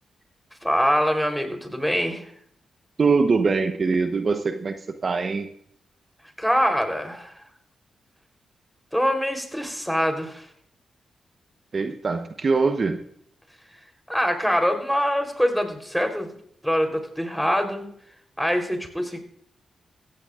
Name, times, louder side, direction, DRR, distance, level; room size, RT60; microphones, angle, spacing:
voice 1, 0.6-2.2 6.4-7.3 8.9-10.5 14.1-16.3 16.6-17.9 18.4-19.2, equal, ahead, 4 dB, 3.8 m, -24 dB
voice 2, 3.0-4.7 5.0-5.5 11.7-13.0, right 4 dB, 50° right, 7 dB, 1.0 m, -22 dB
16.0 x 15.5 x 2.5 m, 0.65 s
supercardioid pair, 45°, 0 cm